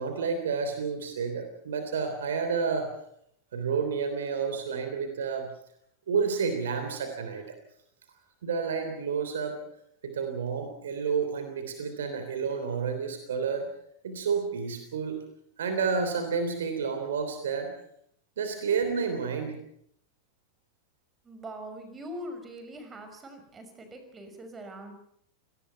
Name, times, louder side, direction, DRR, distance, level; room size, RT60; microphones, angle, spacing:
voice 1, 0.0-2.9 3.5-5.5 6.1-7.6 8.4-9.6 10.0-13.7 14.0-15.2 15.6-17.7 18.4-19.6, right 5 dB, 65° right, 8 dB, 3.3 m, -30 dB
voice 2, 21.2-24.9, equal, 20° right, 7 dB, 5.8 m, -42 dB
28.0 x 19.0 x 5.9 m, 0.70 s
figure-of-eight pair, 90°, 0 cm